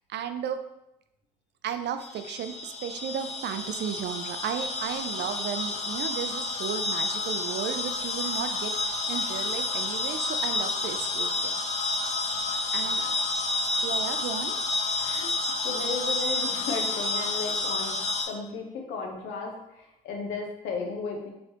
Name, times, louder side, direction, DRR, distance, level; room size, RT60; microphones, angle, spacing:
voice 1, 0.1-0.6 1.6-11.6 12.7-13.0 13.8-14.6, right 8 dB, 60° right, 9 dB, 0.4 m, -34 dB
sound 1, 2.0-18.2, left 3 dB, 35° left, 0.8 m, -30 dB
voice 2, 12.2-13.1 14.9-15.3 15.6-18.0 18.3-21.3, left 4 dB, 70° left, 1 dB, 0.9 m, -35 dB
4.2 x 3.3 x 2.8 m, 0.86 s
hypercardioid pair, 50°, 20 cm